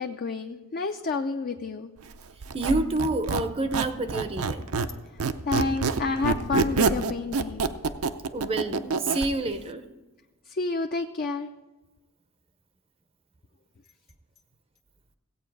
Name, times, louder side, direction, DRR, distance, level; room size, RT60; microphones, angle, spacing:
voice 1, 0.0-1.9 5.1-7.7 10.5-11.5, left 3 dB, 45° left, 5 dB, 0.5 m, -30 dB
Squeak, 2.4-4.9 5.2-9.3, right 4 dB, 75° right, 0.6 m, -26 dB
voice 2, 2.5-4.7 8.3-9.8, right 2 dB, 25° right, 10 dB, 0.6 m, -28 dB
16.5 x 8.4 x 4.7 m, 1.2 s
head